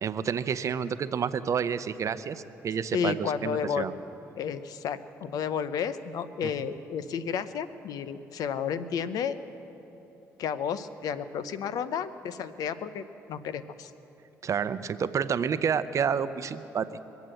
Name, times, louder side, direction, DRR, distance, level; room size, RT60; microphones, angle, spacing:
voice 1, 0.0-3.9 14.4-17.0, right 7 dB, 50° right, 13 dB, 0.7 m, -29 dB
voice 2, 2.9-3.9 4.4-9.4 10.4-13.0 13.3-13.9, left 7 dB, 70° left, 13 dB, 0.7 m, -32 dB
23.0 x 8.2 x 7.7 m, 3.0 s
supercardioid pair, 65°, 7 cm